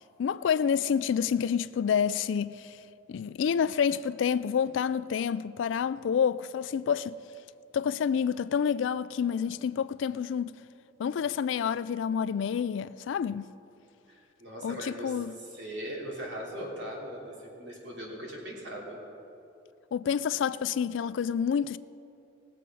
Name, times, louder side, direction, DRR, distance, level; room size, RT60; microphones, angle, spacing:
voice 1, 0.2-2.8 3.1-7.2 7.7-10.5 11.0-13.5 14.6-15.3 19.9-21.8, left 7 dB, 70° left, 0.3 m, -28 dB
voice 2, 14.1-15.2 15.4-19.0, equal, 60° right, 2.8 m, -39 dB
19.0 x 7.6 x 5.4 m
head